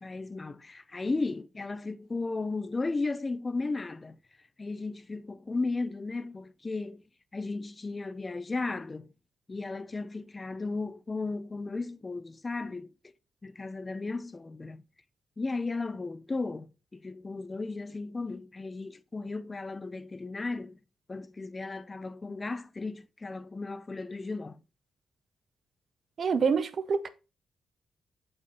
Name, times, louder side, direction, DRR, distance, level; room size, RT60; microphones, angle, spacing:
voice 1, 0.0-4.2 4.6-7.0 7.3-9.1 9.5-12.9 13.4-14.8 15.4-20.8 21.1-24.6, left 3 dB, 20° left, 0.4 m, -35 dB
voice 2, 26.2-27.1, right 5 dB, 50° right, 0.7 m, -26 dB
6.9 x 5.5 x 3.9 m
cardioid pair, 125°, 0 cm